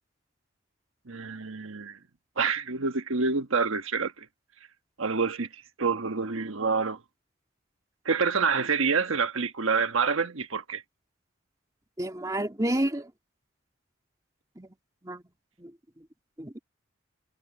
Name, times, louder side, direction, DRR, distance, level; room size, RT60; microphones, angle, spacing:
voice 1, 1.1-2.0 2.4-4.3 5.0-7.0 8.0-10.8, right 5 dB, 90° right, 1.3 m, -27 dB
voice 2, 12.0-13.1 14.6-14.7 15.0-15.2 15.6-15.7 16.4-16.6, right 1 dB, 15° right, 2.6 m, -30 dB
head